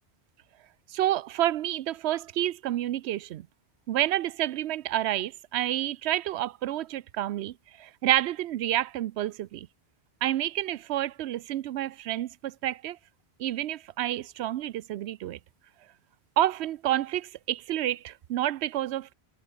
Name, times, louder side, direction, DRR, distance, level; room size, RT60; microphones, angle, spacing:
voice 1, 0.9-3.5 3.9-9.7 10.2-13.0 13.4-15.4 16.4-19.1, right 13 dB, 80° right, 0.8 m, -29 dB
omnidirectional pair, 1.1 m